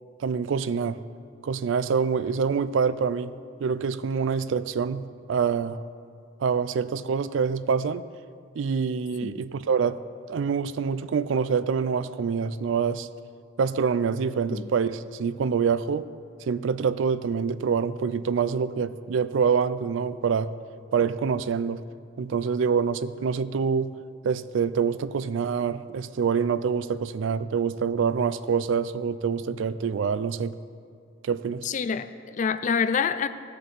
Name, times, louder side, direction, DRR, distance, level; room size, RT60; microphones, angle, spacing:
voice 1, 0.2-1.0 1.4-3.3 3.6-5.8 6.4-8.0 8.5-10.0 10.3-13.1 13.6-16.1 16.5-20.5 20.9-21.8 22.2-23.9 24.2-30.5 31.2-31.7, right 6 dB, 75° right, 15 dB, 0.4 m, -26 dB
voice 2, 31.6-33.3, left 6 dB, 40° left, 12 dB, 0.4 m, -27 dB
15.5 x 6.7 x 4.1 m, 2.3 s
head